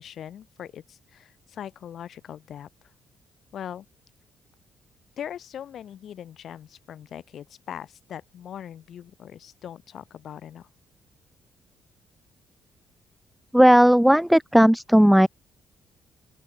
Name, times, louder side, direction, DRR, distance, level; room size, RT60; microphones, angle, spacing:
voice 1, 0.0-2.9 3.5-3.9 5.2-10.7, left 9 dB, 65° left, 5.4 m, -40 dB
voice 2, 13.5-15.3, equal, ahead, 0.4 m, -16 dB
open air
cardioid pair, 90°, 0 cm